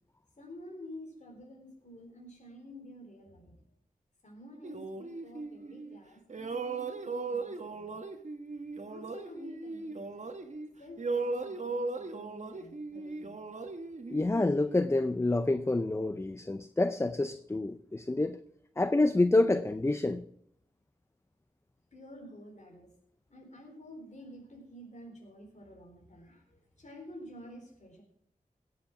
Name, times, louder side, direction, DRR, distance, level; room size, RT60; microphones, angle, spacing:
voice 1, 0.4-3.6 4.2-8.0 8.8-10.1 10.8-13.4 21.9-22.9 23.3-28.0, left 1 dB, 55° left, 4.1 m, -50 dB
sound 1, 4.6-6.0 6.3-10.7 11.0-14.8, right 3 dB, 55° right, 1.3 m, -38 dB
voice 2, 14.1-18.4 18.8-20.2, left 2 dB, 20° left, 0.5 m, -28 dB
17.5 x 7.9 x 5.9 m
wide cardioid pair, 75°, 14 cm